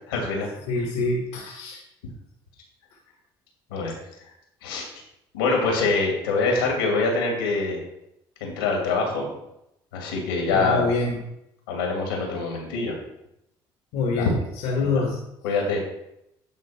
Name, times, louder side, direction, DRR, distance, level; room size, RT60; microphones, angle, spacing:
voice 1, 0.1-0.5 3.7-3.9 4.6-4.9 5.3-7.8 8.4-9.3 9.9-10.9 11.7-13.0 14.1-14.3 14.8-15.0 15.4-15.8, left 3 dB, 90° left, 0 dB, 2.7 m, -24 dB
voice 2, 0.7-1.8 10.5-11.2 13.9-14.3 14.6-15.2, left 3 dB, 70° left, 0 dB, 1.8 m, -25 dB
10.5 x 3.9 x 5.9 m, 0.83 s
hypercardioid pair, 65°, 12 cm